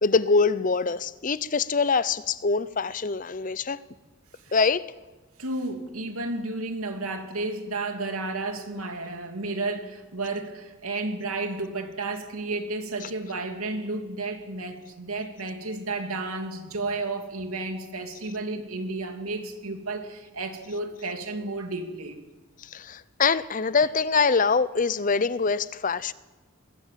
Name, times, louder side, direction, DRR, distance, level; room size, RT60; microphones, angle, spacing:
voice 1, 0.0-3.8 4.5-4.8 22.6-26.1, left 4 dB, 40° left, 0.6 m, -24 dB
voice 2, 5.4-22.2, right 2 dB, 85° right, 2.8 m, -32 dB
21.5 x 16.0 x 7.6 m
head